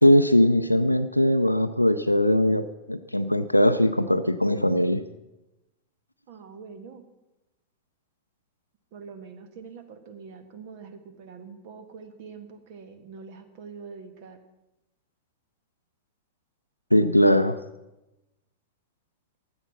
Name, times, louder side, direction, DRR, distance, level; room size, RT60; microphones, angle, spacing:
voice 1, 0.0-5.0 16.9-17.6, left 1 dB, 90° left, 7 dB, 0.5 m, -20 dB
voice 2, 6.3-7.0 8.9-14.4, right 5 dB, 50° right, 10 dB, 1.6 m, -44 dB
16.0 x 11.0 x 5.8 m, 0.95 s
figure-of-eight pair, 90°, 0 cm